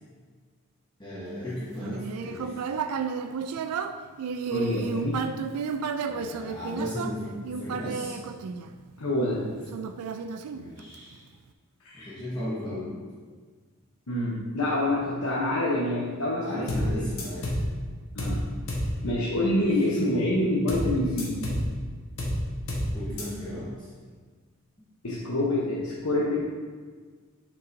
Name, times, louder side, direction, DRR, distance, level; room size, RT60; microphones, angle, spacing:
voice 1, 1.0-2.7 6.1-8.2 9.4-9.6 10.5-11.3 11.9-13.0 16.4-17.5 19.4-20.2 22.9-23.9, equal, 20° left, -10 dB, 1.1 m, -36 dB
Human voice, 1.8-9.1 9.7-11.1, right 5 dB, 85° right, 0.4 m, -32 dB
voice 2, 4.5-5.2 9.0-9.4 11.8-12.1 14.1-17.0 18.1-18.5 19.0-21.4 25.0-26.4, left 1 dB, 80° left, -5 dB, 1.0 m, -27 dB
sound 1, 16.7-16.9 17.2-17.7 18.2-18.4 18.7-18.9 20.7-20.9 21.2-21.7 22.2-22.4 22.7-22.9 23.2-23.3, equal, 65° left, 1.3 m, -28 dB
7.8 x 5.4 x 2.7 m, 1.5 s
head